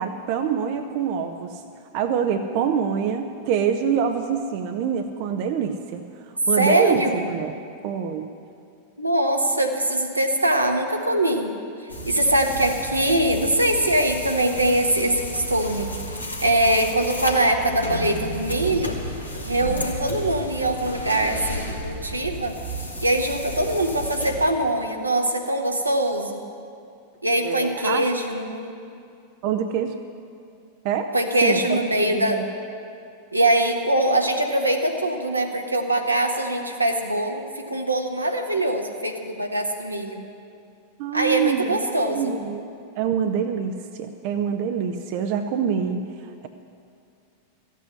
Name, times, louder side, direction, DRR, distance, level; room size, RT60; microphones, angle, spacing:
voice 1, 0.0-1.6 1.9-6.0 6.5-7.5 7.8-8.3 27.4-28.1 29.4-29.9 30.8-31.1 31.4-32.4 41.0-41.8 42.1-42.7 43.0-46.5, right 7 dB, 45° right, 7 dB, 0.7 m, -25 dB
voice 2, 6.6-7.3 9.0-11.5 12.1-15.9 16.4-18.9 19.4-22.5 23.0-26.4 27.2-28.7 31.1-32.4 33.3-40.2 41.1-42.4, right 1 dB, 85° right, 3 dB, 1.3 m, -22 dB
sound 1, 11.9-24.5, equal, 85° left, 1.8 m, -32 dB
14.0 x 8.3 x 9.6 m, 2.4 s
figure-of-eight pair, 90°, 0 cm